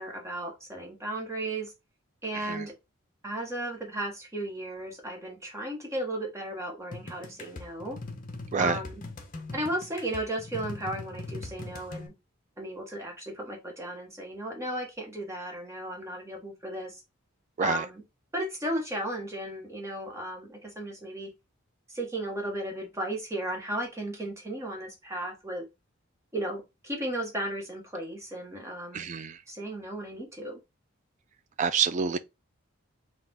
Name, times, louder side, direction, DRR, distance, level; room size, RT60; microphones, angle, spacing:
voice 1, 0.0-1.7 2.2-2.7 3.2-8.0 8.6-9.0 9.5-12.1 12.6-17.0 17.6-18.0 18.3-21.3 21.9-25.6 26.3-29.0 29.5-30.6, right 1 dB, 15° right, 1.2 m, -35 dB
voice 2, 2.3-2.7 8.5-8.8 17.6-17.9 28.9-29.4 31.6-32.2, right 6 dB, 35° right, 0.3 m, -28 dB
sound 1, 6.9-12.1, left 2 dB, 40° left, 0.8 m, -41 dB
4.1 x 2.4 x 3.9 m
head